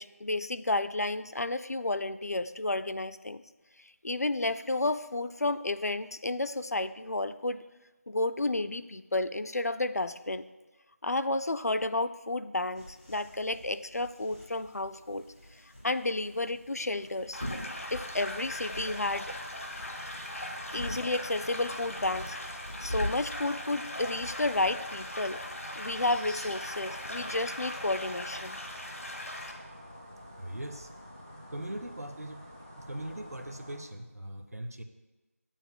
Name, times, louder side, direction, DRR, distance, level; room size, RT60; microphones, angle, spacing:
voice 1, 0.0-3.4 3.8-7.6 8.1-10.5 11.0-17.4 17.9-19.3 19.8-20.2 20.7-25.4 25.8-28.6, left 2 dB, 90° left, 13 dB, 0.3 m, -32 dB
sound 1, 12.7-27.4, equal, 20° left, 2.4 m, -50 dB
sound 2, 17.3-29.5, left 1 dB, 65° left, 0.8 m, -40 dB
Air Tone London City Night, 17.4-33.8, equal, 15° right, 0.4 m, -44 dB
voice 2, 30.4-30.9 31.5-32.4 32.8-34.8, right 1 dB, 75° right, 8 dB, 0.7 m, -40 dB
8.8 x 7.0 x 2.2 m, 1.2 s
figure-of-eight pair, 170°, 8 cm